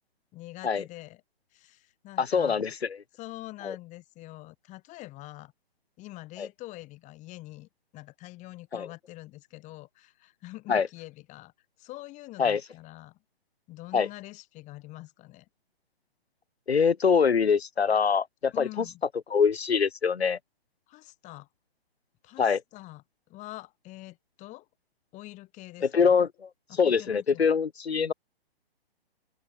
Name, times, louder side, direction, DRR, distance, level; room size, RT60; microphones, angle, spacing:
voice 1, 0.3-1.2 1.5-2.6 3.1-5.5 6.0-11.5 11.8-13.2 13.7-15.5 18.5-19.0 20.9-21.5 22.2-23.0 23.3-24.7 25.1-26.2 26.7-27.5, left 18 dB, 25° left, 5.9 m, -45 dB
voice 2, 2.2-2.7 3.6-3.7 6.4-6.5 8.7-8.9 10.7-10.9 12.4-12.6 13.9-14.1 16.7-18.7 19.3-20.4 22.4-22.6 25.8-26.3 26.8-28.1, left 6 dB, 90° left, 1.4 m, -24 dB
open air
hypercardioid pair, 140°, 31 cm